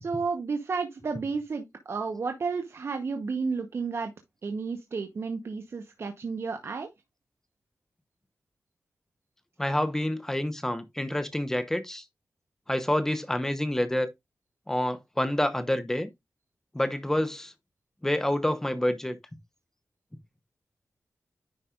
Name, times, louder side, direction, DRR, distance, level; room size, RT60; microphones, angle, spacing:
voice 1, 0.0-4.1 4.4-6.9, right 4 dB, 55° right, 1.0 m, -32 dB
voice 2, 9.6-12.0 12.7-14.1 14.7-16.1 16.7-17.5 18.0-19.2, left 1 dB, 10° left, 0.8 m, -28 dB
10.0 x 5.3 x 2.4 m
wide cardioid pair, 165°, 5 cm